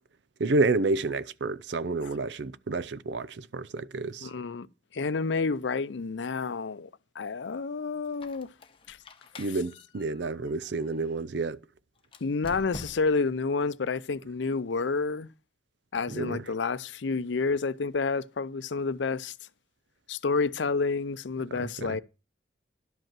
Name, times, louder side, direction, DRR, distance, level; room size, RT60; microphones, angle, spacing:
voice 1, 0.4-4.3 9.4-11.6 16.1-16.4 21.5-22.0, right 3 dB, 70° right, 0.6 m, -29 dB
voice 2, 4.2-4.7 4.9-6.9 7.2-8.5 8.9-9.0 12.2-15.3 15.9-19.3 20.1-22.0, left 4 dB, 80° left, 0.6 m, -29 dB
Squeak, 8.1-11.2 12.0-13.3, left 2 dB, 30° left, 1.0 m, -48 dB
11.5 x 5.3 x 7.4 m
head